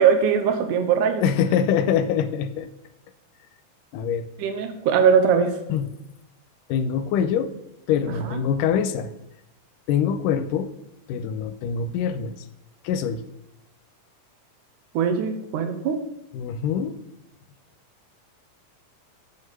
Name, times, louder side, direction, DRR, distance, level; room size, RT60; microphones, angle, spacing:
voice 1, 0.0-1.2 4.4-5.6 8.3-8.4 14.9-16.0, right 7 dB, 75° right, 6 dB, 2.4 m, -20 dB
voice 2, 1.2-2.7 3.9-4.3 5.7-5.9 6.7-7.5 7.9-9.1 9.9-10.7 11.1-12.5 12.8-13.2 16.3-17.0, left 8 dB, 85° left, 10 dB, 2.2 m, -24 dB
7.3 x 6.2 x 6.6 m, 0.89 s
omnidirectional pair, 3.8 m